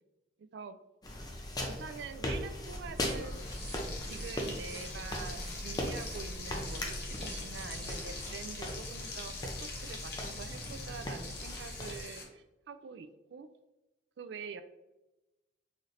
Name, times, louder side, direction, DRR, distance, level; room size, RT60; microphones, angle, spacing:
voice 1, 0.4-0.8 1.7-3.6 4.0-13.5 14.2-14.6, right 5 dB, 70° right, 10 dB, 0.3 m, -46 dB
sound 1, 1.0-12.0, left 1 dB, 20° left, 0.4 m, -40 dB
sound 2, 2.7-8.2, equal, 55° right, 1.3 m, -45 dB
Frying (food), 3.1-12.2, left 3 dB, 55° left, 0.8 m, -44 dB
4.1 x 3.1 x 2.5 m, 1.0 s
head